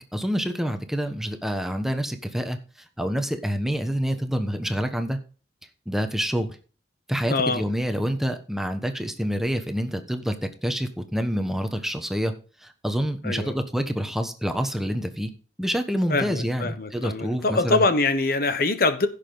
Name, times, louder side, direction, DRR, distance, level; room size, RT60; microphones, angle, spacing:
voice 1, 0.0-2.6 3.0-5.2 5.9-6.6 7.1-10.4 10.6-12.3 12.6-15.3 15.6-17.8, equal, ahead, 1.1 m, -27 dB
voice 2, 7.3-7.6 13.2-13.5 16.1-19.1, left 3 dB, 55° left, 1.1 m, -24 dB
16.0 x 6.7 x 3.9 m
head